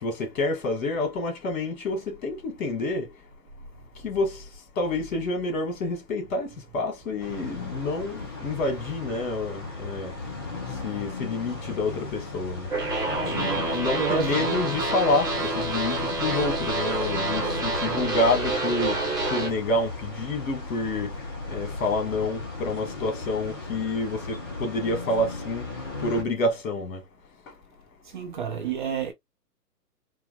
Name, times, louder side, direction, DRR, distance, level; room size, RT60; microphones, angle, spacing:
voice 1, 0.0-3.1 4.0-4.4 4.8-10.1 10.8-12.7 13.3-19.0 19.3-21.1 21.5-25.7 26.0-27.0, left 2 dB, 55° left, 2.1 m, -28 dB
sound 1, 7.2-26.2, left 3 dB, 15° left, 0.4 m, -36 dB
sound 2, 12.7-19.5, right 2 dB, 10° right, 1.1 m, -28 dB
voice 2, 13.3-14.6 17.8-18.1 28.1-29.1, right 7 dB, 30° right, 0.6 m, -31 dB
4.5 x 2.1 x 2.4 m
hypercardioid pair, 135°, 48 cm